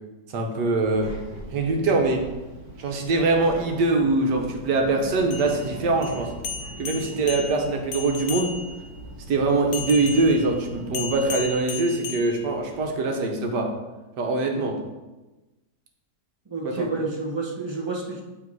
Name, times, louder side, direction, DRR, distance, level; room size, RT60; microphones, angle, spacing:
voice 1, 0.3-1.1 1.5-2.2 2.8-6.3 6.8-8.5 9.3-13.7 14.2-14.8 16.6-16.9, right 3 dB, 75° right, 3 dB, 1.5 m, -23 dB
Child speech kid speaking, 0.8-11.5, right 1 dB, 60° right, 1.6 m, -40 dB
sound 1, 5.2-8.9 9.7-12.9, left 6 dB, 70° left, 0.8 m, -35 dB
voice 2, 16.5-18.2, right 3 dB, 40° right, -1 dB, 0.3 m, -29 dB
8.3 x 3.4 x 4.6 m, 1.1 s
omnidirectional pair, 1.8 m